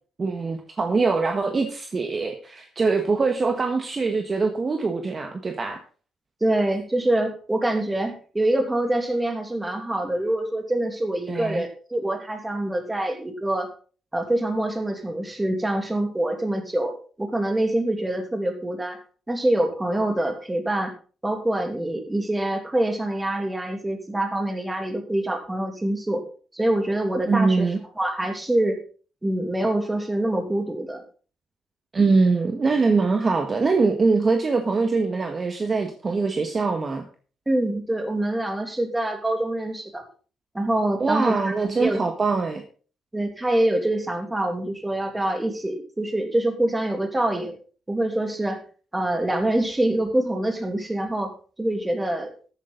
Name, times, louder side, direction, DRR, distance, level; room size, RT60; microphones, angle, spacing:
voice 1, 0.2-5.8 11.3-11.6 27.3-27.8 31.9-37.1 41.0-42.6, right 4 dB, 35° right, 5 dB, 1.4 m, -23 dB
voice 2, 6.4-13.7 14.1-19.0 19.3-20.9 21.2-26.2 26.5-27.6 28.0-28.8 29.2-31.0 37.5-40.0 40.5-41.5 41.8-42.0 43.1-47.5 47.9-48.6 48.9-51.3 51.6-52.3, right 1 dB, 15° right, 5 dB, 2.8 m, -25 dB
13.5 x 9.0 x 4.0 m, 0.38 s
cardioid pair, 90°, 0 cm